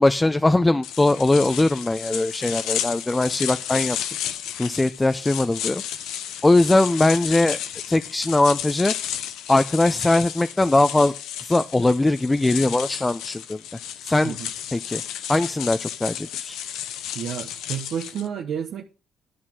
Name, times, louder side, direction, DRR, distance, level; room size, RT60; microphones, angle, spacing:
voice 1, 0.0-4.0 4.6-5.8 6.4-7.6 7.9-8.9 9.5-11.1 11.4-13.6 14.0-14.3 14.7-15.0 15.3-16.6, left 2 dB, 15° left, 0.5 m, -20 dB
sound 1, 0.8-18.3, left 10 dB, 90° left, 0.8 m, -32 dB
voice 2, 17.1-18.8, right 8 dB, 70° right, 1.0 m, -30 dB
11.5 x 4.0 x 7.4 m
cardioid pair, 90°, 0 cm